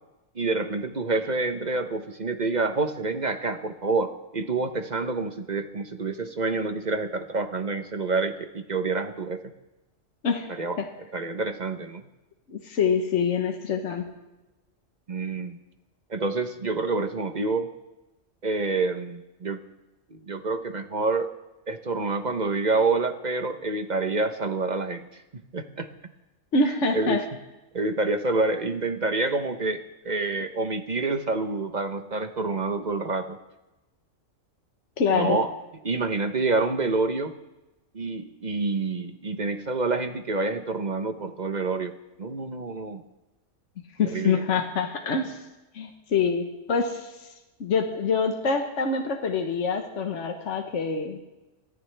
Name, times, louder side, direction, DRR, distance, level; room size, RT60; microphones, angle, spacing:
voice 1, 0.3-9.4 10.6-10.8 11.1-12.0 15.1-15.6 16.1-17.7 18.4-19.6 20.1-21.3 21.7-25.9 26.9-27.2 27.7-33.4 35.1-35.5 35.8-37.3 37.9-41.9 42.2-43.0 44.1-44.6, right 3 dB, 40° right, 8 dB, 0.9 m, -27 dB
voice 2, 10.2-10.9 12.5-14.1 26.5-27.2 35.0-35.4 44.0-45.4 45.7-47.3 47.6-51.2, left 5 dB, 65° left, 4 dB, 1.5 m, -26 dB
23.5 x 15.0 x 3.4 m, 1.0 s
omnidirectional pair, 1.4 m